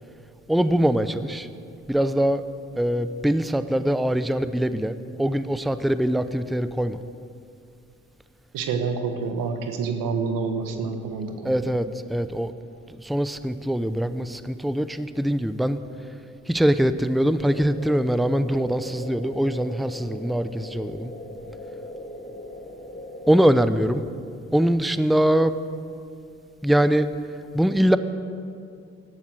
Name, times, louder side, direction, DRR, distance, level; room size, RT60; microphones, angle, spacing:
voice 1, 0.5-1.5 1.9-2.4 2.8-7.0 11.4-12.5 13.0-15.8 16.5-21.1 23.3-24.1 24.5-25.5 26.6-27.1 27.5-28.0, equal, ahead, 12 dB, 0.7 m, -22 dB
voice 2, 8.5-11.7, right 5 dB, 80° right, 6 dB, 1.4 m, -28 dB
sound 1, 17.4-23.5, equal, 30° left, 2.5 m, -39 dB
17.0 x 11.5 x 6.6 m, 2.4 s
hypercardioid pair, 40°, 33 cm